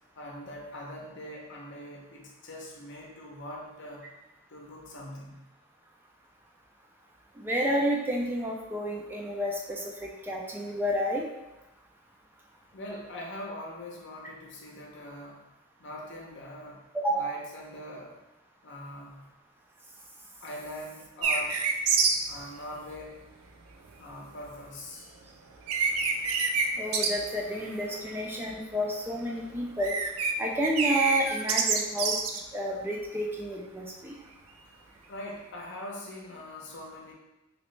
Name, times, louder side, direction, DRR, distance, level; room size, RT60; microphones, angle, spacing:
voice 1, 0.2-4.0 4.5-5.4 12.7-15.4 15.8-16.8 17.1-18.1 18.6-19.2 20.4-21.6 22.3-23.2 24.0-25.1 35.1-37.1, left 1 dB, 60° left, -1 dB, 0.7 m, -42 dB
voice 2, 7.4-11.2 16.9-17.3 26.8-29.9 30.4-32.1 32.5-34.1, equal, 10° right, -1 dB, 0.3 m, -30 dB
sound 1, 21.2-22.2 25.2-25.3 25.7-26.7 26.9-27.1 27.4-28.0 28.3-28.5 29.6-30.3 30.6-32.4, right 5 dB, 90° right, 0.4 m, -26 dB
3.1 x 3.0 x 3.1 m, 1.0 s
head